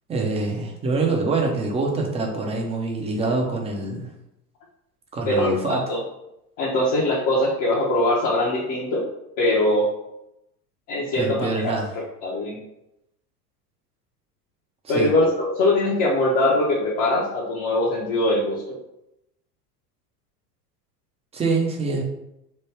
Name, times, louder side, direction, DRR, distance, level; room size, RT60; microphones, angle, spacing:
voice 1, 0.1-4.1 5.1-5.8 11.1-11.9 14.8-15.1 21.3-22.0, right 3 dB, 15° right, 0 dB, 0.5 m, -25 dB
voice 2, 5.2-6.0 6.6-9.0 9.4-9.9 10.9-11.7 12.2-12.6 14.9-18.8, left 1 dB, 40° left, -4 dB, 0.8 m, -22 dB
3.2 x 2.1 x 3.2 m, 0.86 s
hypercardioid pair, 90°, 49 cm